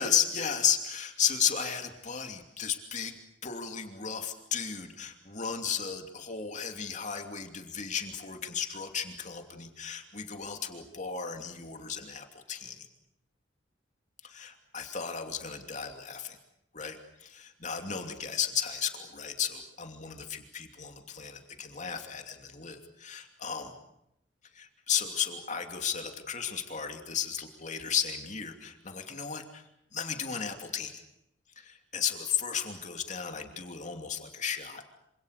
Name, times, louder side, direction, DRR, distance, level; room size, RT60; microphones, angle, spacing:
voice 1, 0.0-3.2 3.4-12.9 14.2-16.4 16.7-23.7 24.6-29.6 29.9-31.0 31.6-34.8, left 7 dB, 40° left, 5 dB, 2.8 m, -34 dB
27.0 x 26.5 x 6.7 m, 0.82 s
head